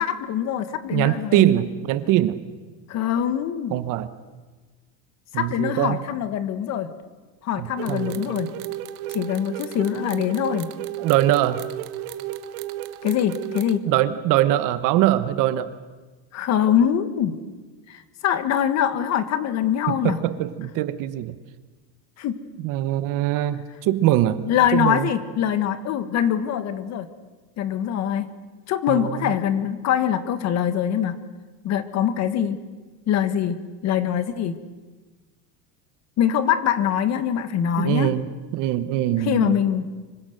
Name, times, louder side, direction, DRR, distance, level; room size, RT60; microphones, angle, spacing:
voice 1, 0.0-1.5 2.9-3.8 5.3-6.9 7.4-8.5 9.1-10.7 13.0-13.9 16.3-17.4 17.9-20.2 22.2-22.4 24.4-27.1 27.6-28.3 28.7-31.2 31.6-32.6 33.1-33.6 33.8-34.6 36.2-38.1 39.2-39.8, left 9 dB, 40° left, 11 dB, 1.5 m, -23 dB
voice 2, 0.9-2.4 3.7-4.1 5.3-6.0 7.6-8.1 11.0-11.6 13.8-15.7 19.9-21.4 22.6-25.1 28.9-29.3 37.8-39.6, right 13 dB, 45° right, 13 dB, 1.2 m, -22 dB
sound 1, 7.8-13.8, right 13 dB, 85° right, 1.6 m, -33 dB
25.5 x 24.0 x 6.7 m, 1.3 s
cardioid pair, 170°, 43 cm